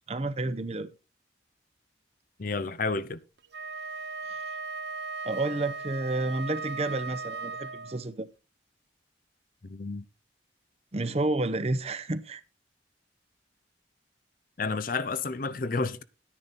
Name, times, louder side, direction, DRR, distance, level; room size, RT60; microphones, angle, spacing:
voice 1, 0.1-0.9 5.2-8.3 10.9-12.4, right 2 dB, 35° right, 0.7 m, -30 dB
voice 2, 2.4-3.2 9.6-10.1 14.6-16.0, left 4 dB, 50° left, 0.6 m, -30 dB
Wind instrument woodwind instrument, 3.4-8.1, right 4 dB, 70° right, 0.6 m, -37 dB
10.5 x 9.9 x 4.1 m
head